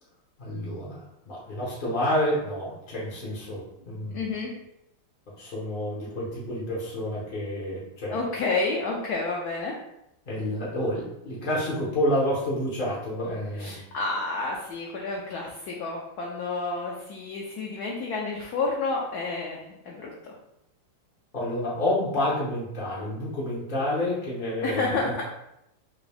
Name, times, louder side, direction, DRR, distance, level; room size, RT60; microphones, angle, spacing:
voice 1, 0.4-4.2 5.4-8.2 10.3-13.8 21.3-25.1, left 1 dB, 45° left, -6 dB, 0.6 m, -29 dB
voice 2, 4.1-4.5 8.1-9.8 13.6-20.3 24.6-25.2, left 3 dB, 70° left, -2 dB, 0.9 m, -30 dB
3.7 x 2.6 x 3.3 m, 0.83 s
omnidirectional pair, 2.1 m